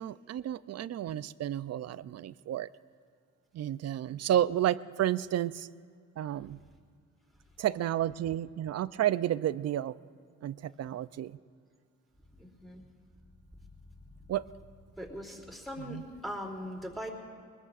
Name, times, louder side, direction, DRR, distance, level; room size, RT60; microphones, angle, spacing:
voice 1, 0.0-2.7 3.5-5.7 6.2-6.6 7.6-10.0 10.4-11.4 14.3-14.5 15.9-16.0, right 12 dB, 55° right, 17 dB, 0.4 m, -31 dB
voice 2, 12.4-12.8 15.0-17.1, equal, ahead, -2 dB, 2.8 m, -40 dB
23.5 x 20.5 x 2.5 m, 2.1 s
cardioid pair, 100°, 31 cm